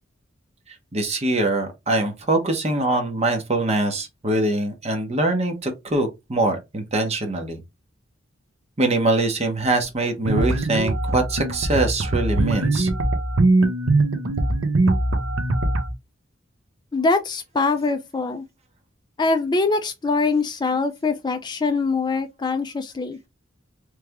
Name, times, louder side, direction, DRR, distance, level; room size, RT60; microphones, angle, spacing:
voice 1, 0.9-7.6 8.8-12.9, right 2 dB, 35° right, 1.0 m, -23 dB
sound 1, 10.2-15.9, right 2 dB, 90° right, 0.8 m, -21 dB
voice 2, 16.9-18.4 19.2-23.2, left 3 dB, 20° left, 0.4 m, -23 dB
3.3 x 3.2 x 3.5 m
head